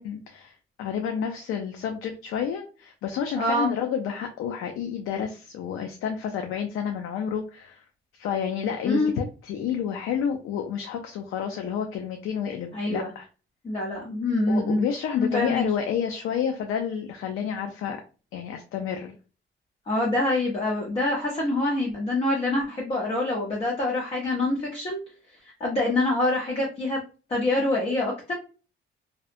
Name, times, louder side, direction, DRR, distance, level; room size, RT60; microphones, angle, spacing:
voice 1, 0.0-7.8 8.1-13.3 14.5-18.0 18.3-19.2, left 8 dB, 90° left, 4 dB, 0.4 m, -30 dB
voice 2, 3.4-3.7 8.8-9.2 12.7-13.1 13.6-14.9 15.2-15.6 19.9-25.0 25.6-27.0 27.3-28.3, left 2 dB, 25° left, -2 dB, 0.6 m, -25 dB
2.6 x 2.0 x 2.5 m, 0.35 s
cardioid pair, 155°, 21 cm